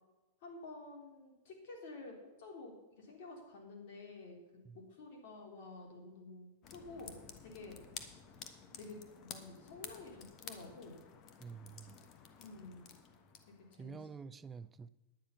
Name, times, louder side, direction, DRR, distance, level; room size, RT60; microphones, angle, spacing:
voice 1, 0.4-4.4 4.7-7.1 7.4-7.8 8.7-11.0 12.4-12.8 13.7-14.0, left 3 dB, 65° left, 3.6 m, -51 dB
sound 1, 6.6-13.8, left 7 dB, 40° left, 1.3 m, -52 dB
voice 2, 11.4-12.0 13.8-14.9, right 5 dB, 20° right, 0.5 m, -48 dB
10.5 x 9.1 x 5.8 m
hypercardioid pair, 120°, 0 cm